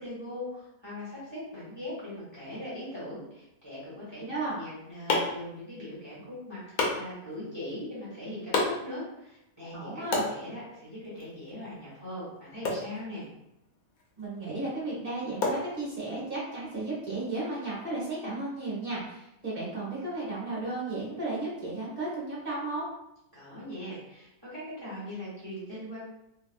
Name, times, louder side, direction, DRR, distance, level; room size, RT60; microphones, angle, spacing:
voice 1, 0.0-13.3 23.3-26.0, left 1 dB, 20° right, -10 dB, 1.3 m, -40 dB
voice 2, 4.2-4.6 9.7-10.3 14.2-22.8, right 2 dB, 40° right, -8 dB, 1.3 m, -34 dB
sound 1, 4.4-16.4, left 3 dB, 85° left, 1.1 m, -36 dB
2.9 x 2.6 x 2.3 m, 0.82 s
omnidirectional pair, 1.5 m